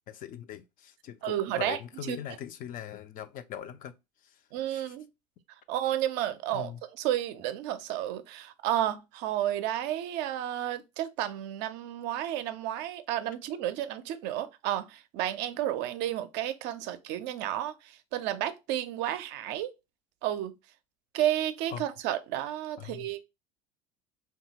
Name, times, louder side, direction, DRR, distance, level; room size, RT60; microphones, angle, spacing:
voice 1, 0.1-3.9 4.2-4.4 4.7-4.9 6.5-6.8 21.7-21.8 22.8-23.1, left 10 dB, 45° left, 0.4 m, -41 dB
voice 2, 1.2-1.8 2.1-2.2 4.5-5.1 5.7-6.7 7.0-19.7 20.2-20.5 21.1-23.2, right 12 dB, 60° right, 0.4 m, -31 dB
2.7 x 2.2 x 2.9 m
hypercardioid pair, 75°, 20 cm